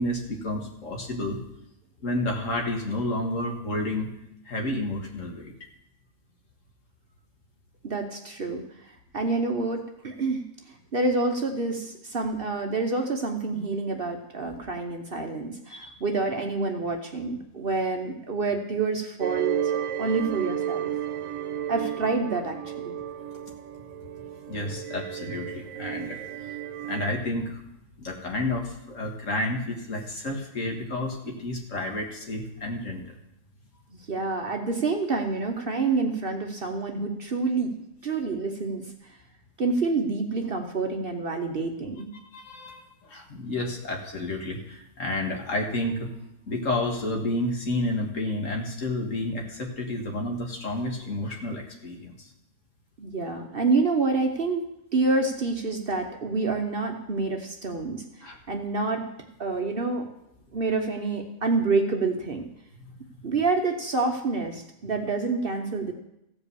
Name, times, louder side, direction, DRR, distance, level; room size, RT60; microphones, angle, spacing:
voice 1, 0.0-1.4 2.0-4.1 4.5-5.5 15.7-15.9 23.3-23.5 24.0-26.5 26.8-27.6 28.0-33.0 42.3-46.1 46.4-52.3 58.2-58.4, left 1 dB, 60° left, 1 dB, 2.0 m, -30 dB
voice 2, 7.8-8.9 9.1-19.6 20.0-20.9 21.7-22.9 33.9-37.7 38.0-39.2 39.6-42.1 53.0-59.1 59.4-60.1 60.5-62.4 63.2-65.9, right 3 dB, 45° right, 4 dB, 1.0 m, -28 dB
sound 1, 19.2-27.1, right 10 dB, 75° right, 1.0 m, -33 dB
15.0 x 5.2 x 6.9 m, 0.84 s
omnidirectional pair, 1.5 m